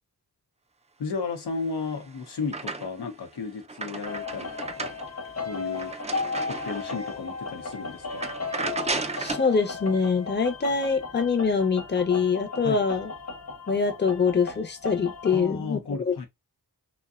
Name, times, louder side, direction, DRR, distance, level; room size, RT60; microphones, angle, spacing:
voice 1, 1.0-4.9 5.4-5.9 6.5-8.3 12.6-12.9 15.3-16.3, left 4 dB, 85° left, 0.8 m, -34 dB
sound 1, 1.6-3.2 3.5-7.1 7.6-7.7 8.1-9.5, right 3 dB, 20° right, 0.3 m, -34 dB
sound 2, 4.0-15.4, left 4 dB, 45° left, 1.0 m, -36 dB
voice 2, 9.2-13.1 13.7-16.1, left 5 dB, 30° left, 0.6 m, -24 dB
2.6 x 2.2 x 2.3 m
cardioid pair, 65°, 39 cm